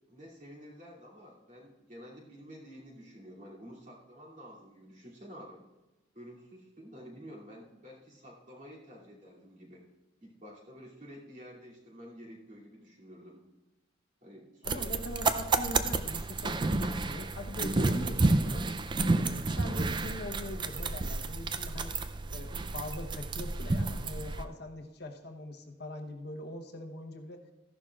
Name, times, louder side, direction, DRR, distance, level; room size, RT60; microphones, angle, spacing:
voice 1, 0.1-5.6 6.1-9.9 10.2-13.4 14.2-14.9, equal, 40° right, -4 dB, 2.7 m, -50 dB
voice 2, 14.6-18.7 19.0-22.0 22.3-27.4, left 1 dB, 55° left, 3 dB, 1.0 m, -42 dB
sound 1, 14.6-24.4, right 3 dB, 25° right, 0.4 m, -30 dB
14.5 x 11.0 x 2.4 m, 1.1 s
head